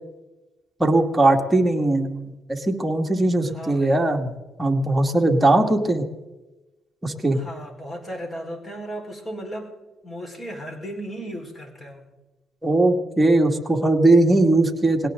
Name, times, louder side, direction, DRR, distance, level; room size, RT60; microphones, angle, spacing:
voice 1, 0.8-2.2 2.5-4.3 4.6-6.1 7.0-7.4 12.6-15.1, right 2 dB, 10° right, 2 dB, 2.3 m, -19 dB
voice 2, 3.4-4.0 7.3-12.1, equal, 30° left, 3 dB, 4.8 m, -35 dB
20.5 x 17.5 x 3.9 m, 1.1 s
cardioid pair, 90°, 0 cm